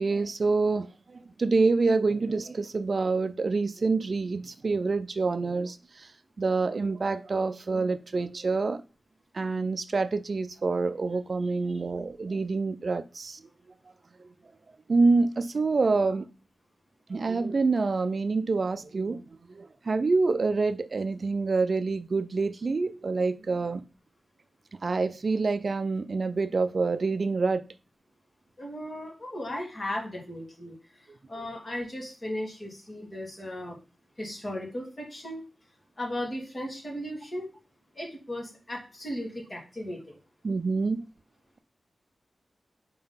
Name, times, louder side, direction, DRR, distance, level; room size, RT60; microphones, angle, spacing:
voice 1, 0.0-6.1 6.4-8.8 9.3-13.4 14.9-16.3 17.1-19.2 19.5-23.8 24.8-27.6 31.4-31.5 40.4-41.0, right 3 dB, 50° right, 0.3 m, -27 dB
voice 2, 28.6-30.7 31.3-33.8 34.2-35.4 36.0-37.5 38.0-40.0, left 1 dB, 30° left, 2.7 m, -36 dB
4.8 x 3.8 x 5.6 m
wide cardioid pair, 110°, 0 cm